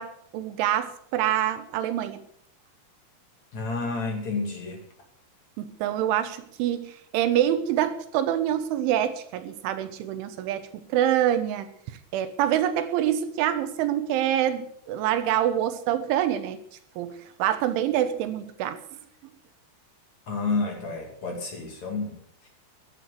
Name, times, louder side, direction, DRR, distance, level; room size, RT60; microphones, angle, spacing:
voice 1, 0.0-2.2 5.6-11.7 12.1-16.6 17.0-18.8, right 11 dB, 80° right, 3.5 m, -26 dB
voice 2, 3.5-4.8 20.3-22.1, left 3 dB, 45° left, 3.1 m, -30 dB
14.0 x 11.5 x 6.5 m
omnidirectional pair, 5.5 m